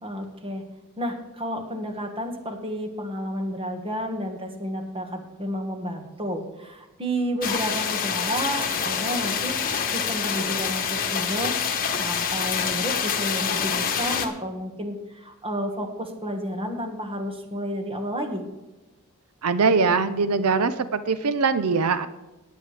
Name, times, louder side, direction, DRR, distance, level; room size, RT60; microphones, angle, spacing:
voice 1, 0.0-0.6 1.0-9.5 9.9-11.5 12.0-18.4, equal, 25° right, 4 dB, 1.6 m, -31 dB
sound 1, 7.4-14.3, left 6 dB, 40° left, 1.2 m, -26 dB
voice 2, 19.4-22.1, right 4 dB, 85° right, 12 dB, 0.6 m, -22 dB
18.5 x 8.4 x 3.4 m, 1.1 s
head